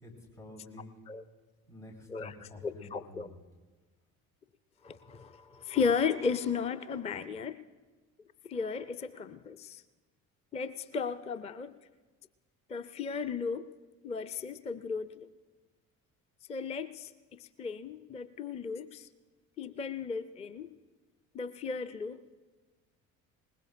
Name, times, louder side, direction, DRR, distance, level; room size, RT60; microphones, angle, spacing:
voice 1, 0.0-1.0 1.7-3.3, left 2 dB, 80° left, -7 dB, 4.0 m, -49 dB
voice 2, 2.6-3.3 4.8-7.6 8.5-9.8 10.5-11.7 12.7-13.7 14.0-15.1 16.5-19.1 19.6-20.7 21.3-22.2, left 5 dB, 15° left, 12 dB, 0.5 m, -35 dB
20.5 x 20.0 x 2.5 m, 1.3 s
figure-of-eight pair, 50°, 42 cm